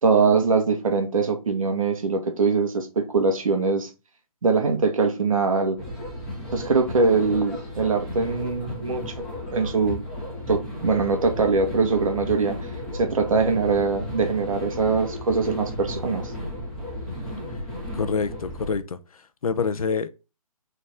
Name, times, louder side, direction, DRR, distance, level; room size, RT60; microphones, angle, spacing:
voice 1, 0.0-3.9 4.4-5.8 6.5-9.1 9.5-10.0 10.5-12.6 12.9-16.2, right 4 dB, 65° right, 1.8 m, -22 dB
sound 1, 5.8-18.7, left 1 dB, 5° left, 2.3 m, -34 dB
voice 2, 17.9-19.0 19.4-20.1, left 5 dB, 70° left, 0.8 m, -26 dB
6.6 x 4.1 x 3.6 m
hypercardioid pair, 165°, 19 cm